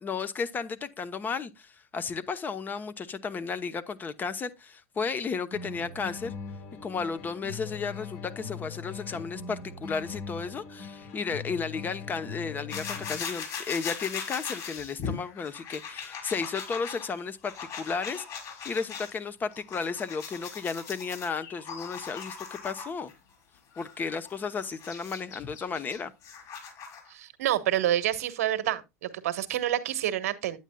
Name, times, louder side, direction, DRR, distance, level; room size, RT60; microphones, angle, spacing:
voice 1, 0.0-6.3 6.8-18.2 18.6-23.1 23.8-26.1, left 5 dB, 20° left, 0.9 m, -33 dB
sound 1, 5.5-13.5, left 5 dB, 65° left, 3.9 m, -41 dB
sound 2, 12.7-19.1 19.5-23.1 23.7-27.1, left 6 dB, 45° left, 5.5 m, -39 dB
voice 2, 27.1-30.6, right 12 dB, 70° right, 1.2 m, -28 dB
9.1 x 9.0 x 2.3 m
hypercardioid pair, 105°, 8 cm